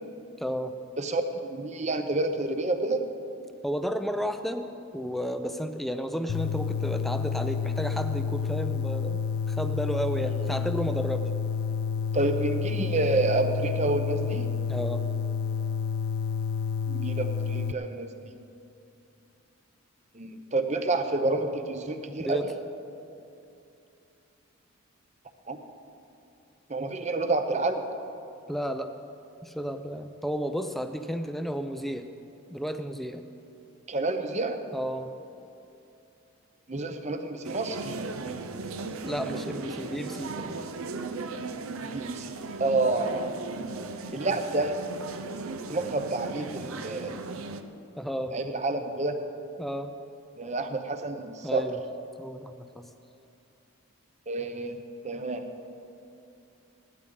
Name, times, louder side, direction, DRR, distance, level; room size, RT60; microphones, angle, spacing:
voice 1, 0.4-0.7 3.6-4.7 4.9-9.2 9.5-11.2 14.7-15.0 22.2-22.5 28.5-28.9 29.4-32.1 32.5-33.2 34.7-35.1 39.0-40.6 48.0-48.4 49.6-49.9 51.4-51.8 52.2-52.9, equal, ahead, 8 dB, 0.5 m, -32 dB
voice 2, 1.0-3.1 10.4-10.6 12.1-14.5 16.9-18.4 20.1-22.4 25.5-25.6 26.7-27.8 33.9-34.6 36.7-37.8 41.9-43.3 44.1-44.7 45.7-47.2 48.3-49.2 50.4-51.7 54.3-55.5, right 2 dB, 30° right, 7 dB, 0.8 m, -29 dB
sound 1, 6.3-17.7, left 6 dB, 70° left, 0.3 m, -29 dB
sound 2, 37.4-47.6, right 3 dB, 70° right, 0.7 m, -37 dB
18.5 x 12.0 x 3.9 m, 2.7 s
head